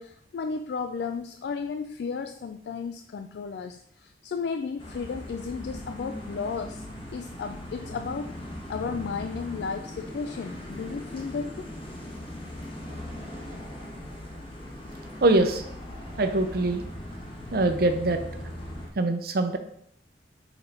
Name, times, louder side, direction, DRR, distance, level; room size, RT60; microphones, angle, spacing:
voice 1, 0.0-6.8 7.1-8.3 8.7-11.7, left 5 dB, 65° left, 8 dB, 0.3 m, -34 dB
sound 1, 4.8-18.9, left 1 dB, 30° left, 1.2 m, -39 dB
voice 2, 15.2-15.6 16.2-16.8 17.5-18.2 19.0-19.6, right 2 dB, 55° right, 7 dB, 0.7 m, -23 dB
5.8 x 3.9 x 4.3 m, 0.67 s
head